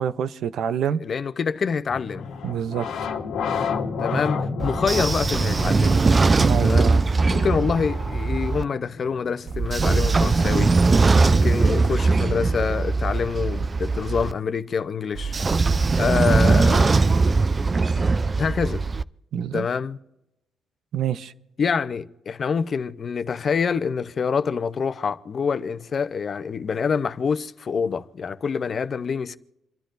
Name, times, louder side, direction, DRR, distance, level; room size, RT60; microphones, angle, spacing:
voice 1, 0.0-1.0 2.4-3.1 4.1-4.2 6.4-7.1 19.3-19.7 20.9-21.3, right 8 dB, 70° right, 0.6 m, -27 dB
voice 2, 1.0-2.3 4.0-6.0 6.6-6.9 7.3-10.8 11.3-15.3 16.0-17.0 18.4-18.8 19.5-20.0 21.6-29.4, left 6 dB, 45° left, 0.7 m, -26 dB
sound 1, 1.9-10.6, left 5 dB, 80° left, 1.2 m, -32 dB
Train / Sliding door, 4.6-8.6 9.5-14.3 15.2-19.0, right 3 dB, 30° right, 0.4 m, -20 dB
28.5 x 11.5 x 2.6 m
cardioid pair, 90°, 0 cm